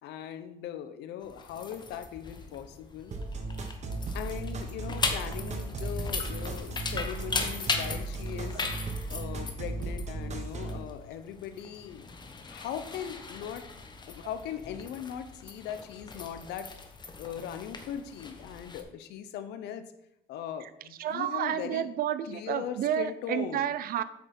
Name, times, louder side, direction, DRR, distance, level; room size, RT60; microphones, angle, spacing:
voice 1, 0.0-3.1 4.1-8.6 9.1-12.0 12.5-13.6 14.1-16.7 17.2-19.9 20.3-21.9 22.2-23.6, left 9 dB, 80° left, 10 dB, 0.9 m, -39 dB
sound 1, 1.2-18.8, left 4 dB, 25° left, 1.1 m, -39 dB
sound 2, 3.1-10.8, right 3 dB, 40° right, 1.4 m, -36 dB
voice 2, 21.0-24.0, right 10 dB, 60° right, 15 dB, 0.6 m, -30 dB
8.5 x 6.2 x 4.4 m, 0.79 s
cardioid pair, 110°, 17 cm